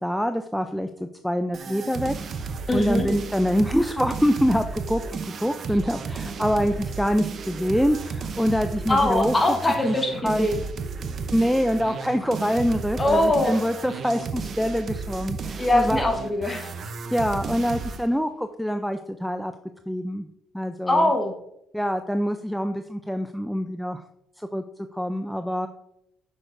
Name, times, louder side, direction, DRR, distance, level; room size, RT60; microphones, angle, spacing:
voice 1, 0.0-2.1 2.4-9.6 9.8-10.0 10.2-10.5 11.1-16.1 17.1-19.5 19.9-20.3 20.5-21.1 21.7-24.0 24.4-24.6 24.9-25.7, equal, ahead, 8 dB, 0.4 m, -25 dB
sound 1, 1.5-18.1, right 5 dB, 55° right, 0.6 m, -33 dB
voice 2, 2.7-3.1 8.9-10.6 13.0-13.6 15.6-16.7 20.9-21.3, left 1 dB, 25° left, 3 dB, 1.1 m, -22 dB
6.3 x 6.3 x 2.5 m, 0.79 s
supercardioid pair, 70°, 0 cm